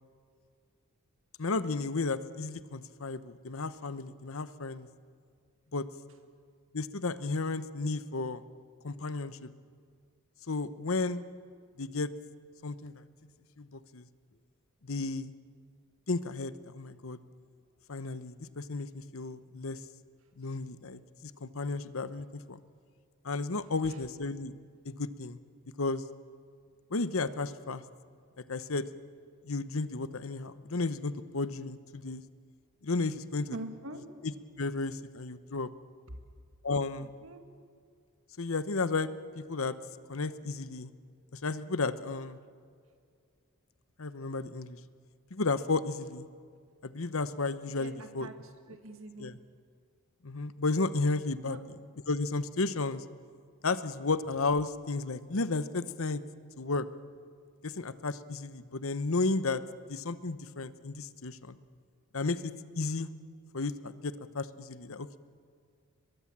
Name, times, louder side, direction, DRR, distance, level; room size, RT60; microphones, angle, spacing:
voice 1, 1.4-4.9 5.7-5.9 6.7-8.4 8.8-9.5 10.5-11.2 11.8-12.1 12.6-13.0 13.6-14.1 14.8-15.3 16.1-17.2 17.9-19.8 20.4-22.6 23.2-24.5 24.8-25.4 25.8-26.0 26.9-27.8 28.5-28.9 29.4-32.2 32.8-33.5 34.6-35.7 36.6-37.1 38.4-39.1 39.4-39.8 40.1-40.9 41.3-42.4 44.0-44.8 45.3-46.3 46.8-48.3 49.2-49.3 50.2-51.6 52.1-53.0 53.6-56.2 56.6-56.9 57.6-59.6 59.9-61.5 62.1-63.1 63.5-65.1, left 3 dB, 65° left, 13 dB, 0.9 m, -33 dB
voice 2, 33.5-34.0 36.1-36.2 37.0-37.4 47.7-49.3 51.5-51.6, right 1 dB, 60° right, 6 dB, 2.1 m, -44 dB
23.0 x 21.5 x 7.4 m, 2.2 s
head